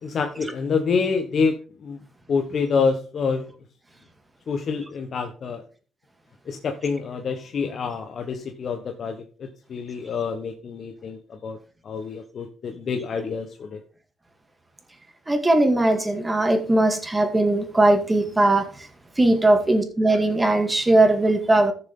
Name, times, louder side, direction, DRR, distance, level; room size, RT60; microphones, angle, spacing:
voice 1, 0.0-2.0 2.3-3.4 4.5-5.6 6.5-11.6 11.8-13.8, left 5 dB, 55° left, 1.1 m, -27 dB
voice 2, 15.3-18.6 19.2-21.7, right 2 dB, 15° right, 2.3 m, -19 dB
14.0 x 7.0 x 3.8 m
cardioid pair, 90°, 0 cm